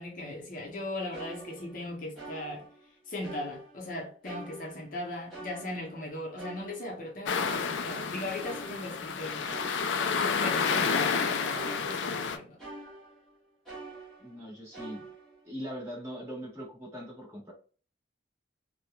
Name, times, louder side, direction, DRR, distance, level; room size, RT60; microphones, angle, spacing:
voice 1, 0.0-2.7 3.1-9.5 10.4-12.6, left 1 dB, 45° left, 0.6 m, -38 dB
sound 1, 0.7-0.8 1.1-2.9 3.2-4.0 4.2-7.1 7.4-13.3 13.7-14.4 14.7-15.5, right 2 dB, ahead, 0.9 m, -46 dB
sound 2, 7.3-12.4, left 5 dB, 80° left, 0.4 m, -30 dB
voice 2, 14.2-15.0 15.4-17.5, equal, 15° right, 1.2 m, -41 dB
3.0 x 2.1 x 2.2 m
head